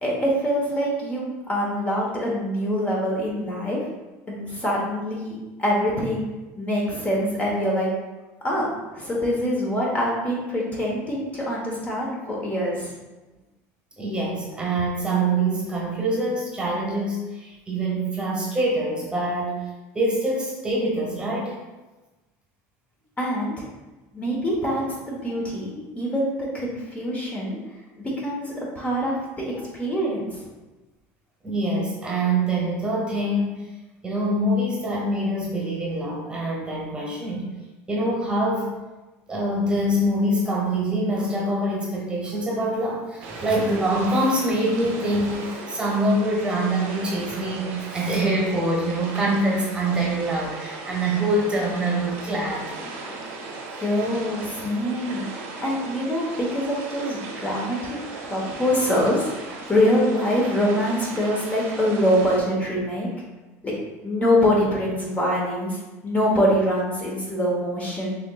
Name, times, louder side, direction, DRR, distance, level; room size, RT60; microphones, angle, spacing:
voice 1, 0.0-3.8 4.3-6.3 6.6-7.9 8.4-12.9 23.2-23.6 24.1-30.4 53.8-55.3 55.6-63.1 63.6-63.7 64.0-68.2, equal, 20° left, -4 dB, 0.9 m, -24 dB
voice 2, 14.0-19.7 19.9-21.6 25.3-25.4 31.4-33.7 34.0-37.5 37.9-38.7 39.3-52.7, right 1 dB, 15° right, -2 dB, 1.1 m, -25 dB
sound 1, 43.2-62.4, right 3 dB, 90° right, 1.1 m, -37 dB
6.4 x 2.9 x 2.3 m, 1.1 s
cardioid pair, 135°, 7 cm